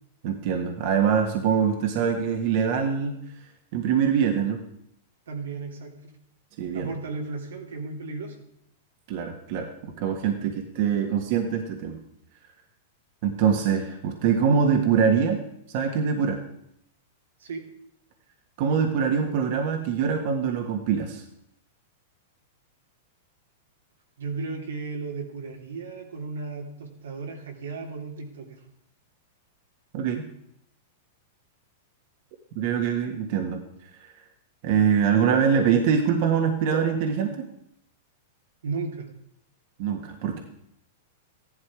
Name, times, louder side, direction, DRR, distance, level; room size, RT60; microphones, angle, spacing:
voice 1, 0.2-3.2 3.7-4.6 6.6-6.9 9.1-12.0 13.2-15.4 15.7-16.4 18.6-21.2 29.9-30.2 32.5-33.6 34.6-37.3 39.8-40.4, right 7 dB, 55° right, 4 dB, 1.6 m, -24 dB
voice 2, 5.3-6.2 6.7-8.4 17.4-17.6 24.2-28.6 38.6-39.1, right 4 dB, 90° right, 1 dB, 2.9 m, -35 dB
14.0 x 11.5 x 4.9 m, 0.73 s
hypercardioid pair, 130°, 0 cm